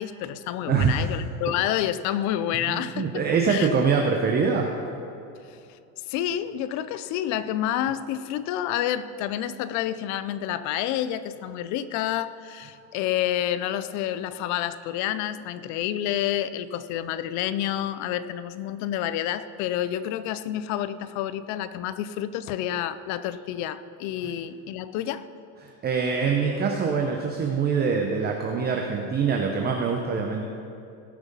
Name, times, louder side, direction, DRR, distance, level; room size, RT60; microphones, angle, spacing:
voice 1, 0.0-3.2 3.5-3.7 5.5-5.6 6.1-25.3, left 11 dB, 40° left, 14 dB, 0.5 m, -29 dB
voice 2, 0.7-1.1 2.5-4.7 24.2-24.3 25.6-30.5, right 5 dB, 20° right, 2 dB, 0.8 m, -24 dB
18.0 x 6.1 x 5.4 m, 2.6 s
supercardioid pair, 135°, 46 cm